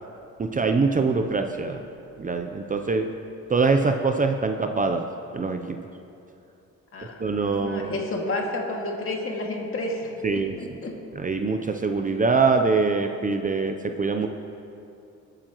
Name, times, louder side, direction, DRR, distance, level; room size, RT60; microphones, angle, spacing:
voice 1, 0.4-1.8 2.2-3.1 3.5-5.0 5.3-5.8 7.2-7.9 10.2-10.6 11.1-14.3, right 4 dB, 25° right, 6 dB, 0.6 m, -23 dB
voice 2, 6.9-10.9, left 2 dB, 45° left, 0 dB, 2.2 m, -31 dB
21.0 x 8.9 x 3.1 m, 2.7 s
cardioid pair, 90°, 30 cm